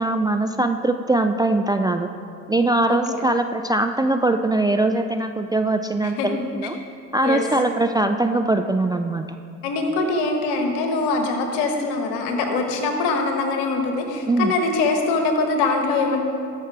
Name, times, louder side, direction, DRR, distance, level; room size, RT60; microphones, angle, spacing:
voice 1, 0.0-2.1 2.5-6.8 7.1-9.4 14.3-14.5, right 2 dB, 10° right, 7 dB, 0.3 m, -21 dB
voice 2, 2.9-3.3 6.0-6.3 7.2-7.4 9.6-16.2, left 3 dB, 70° left, 4 dB, 1.4 m, -23 dB
13.5 x 5.8 x 4.8 m, 2.5 s
hypercardioid pair, 50°, 41 cm